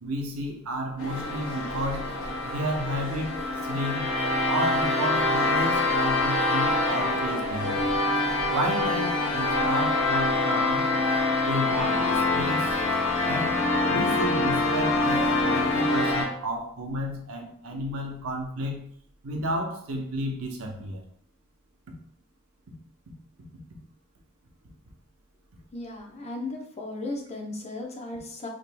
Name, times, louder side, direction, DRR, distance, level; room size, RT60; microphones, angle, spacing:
voice 1, 0.0-2.1 2.4-3.4 3.6-4.1 4.5-7.8 8.5-10.9 11.4-12.8 13.2-13.6 13.9-18.9 19.2-21.0, equal, 80° right, 2 dB, 0.8 m, -32 dB
sound 1, 1.0-16.2, left 2 dB, 70° left, 0.8 m, -25 dB
voice 2, 25.7-28.5, left 2 dB, 30° left, 0 dB, 0.6 m, -36 dB
5.1 x 2.9 x 2.2 m, 0.64 s
head